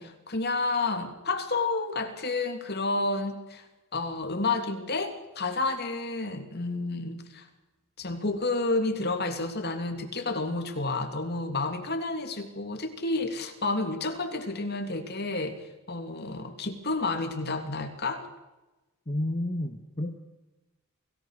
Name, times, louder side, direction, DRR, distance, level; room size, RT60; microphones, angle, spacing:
voice 1, 0.0-3.6 3.9-7.5 8.0-18.3, left 3 dB, 45° left, 6 dB, 2.9 m, -30 dB
voice 2, 19.1-20.2, left 1 dB, 30° left, 7 dB, 1.4 m, -31 dB
28.0 x 18.0 x 6.7 m, 1.1 s
head